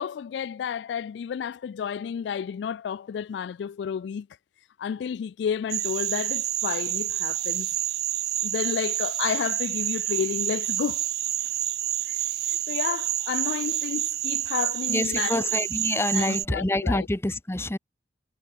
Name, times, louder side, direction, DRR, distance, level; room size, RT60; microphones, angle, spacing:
voice 1, 0.0-4.3 4.8-7.7 8.4-11.1 12.1-12.2 12.5-15.5 16.1-17.1, left 7 dB, 80° left, 0.3 m, -31 dB
sound 1, 5.7-16.4, right 13 dB, 60° right, 1.2 m, -28 dB
voice 2, 14.9-17.8, left 1 dB, 15° left, 0.7 m, -27 dB
head